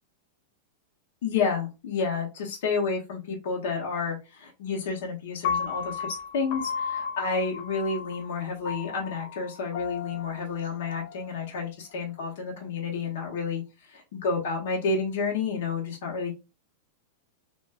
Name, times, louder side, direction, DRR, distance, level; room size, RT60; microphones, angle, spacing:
voice 1, 1.2-13.6 13.9-16.3, left 4 dB, 65° left, -1 dB, 0.9 m, -30 dB
Piano, 5.4-11.6, left 6 dB, 50° left, 0.4 m, -34 dB
2.5 x 2.2 x 2.3 m, 0.28 s
supercardioid pair, 145°, 0 cm